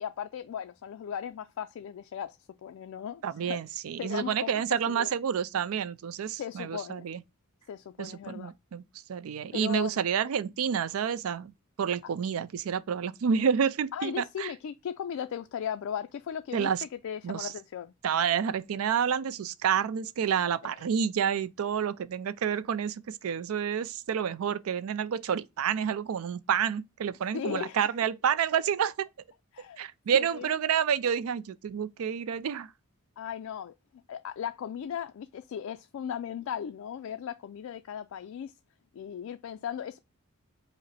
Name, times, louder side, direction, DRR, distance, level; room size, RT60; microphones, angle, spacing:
voice 1, 0.0-3.6 4.0-5.1 6.4-7.1 7.7-8.5 9.5-10.0 13.9-17.9 20.6-20.7 27.3-27.8 29.5-29.9 30.1-30.5 33.2-38.5 38.9-40.0, left 8 dB, 65° left, 0.3 m, -37 dB
voice 2, 3.2-7.2 8.0-8.8 9.1-11.5 11.8-14.5 16.5-16.8 17.2-17.5 18.0-29.1 29.8-32.7, right 7 dB, 80° right, 0.4 m, -29 dB
5.0 x 2.1 x 4.0 m
head